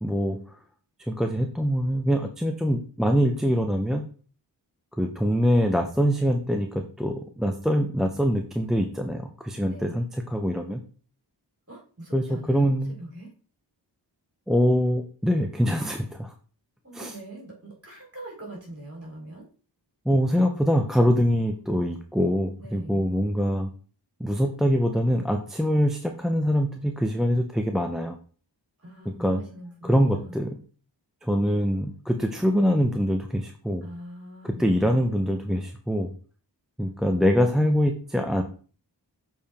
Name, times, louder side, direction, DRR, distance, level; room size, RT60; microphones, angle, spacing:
voice 1, 0.0-0.4 1.1-4.1 5.0-10.0 10.3-10.8 12.1-12.9 14.5-16.3 16.9-17.1 20.1-23.7 24.2-28.2 29.2-29.4 29.8-30.6 31.2-33.8 34.4-36.1 36.8-38.4, equal, ahead, 4 dB, 0.8 m, -24 dB
voice 2, 9.6-10.0 11.7-13.3 16.8-19.5 22.6-23.1 28.8-30.4 33.8-35.1, right 1 dB, 30° right, -2 dB, 3.9 m, -42 dB
7.2 x 4.6 x 3.6 m, 0.39 s
wide cardioid pair, 50°, 44 cm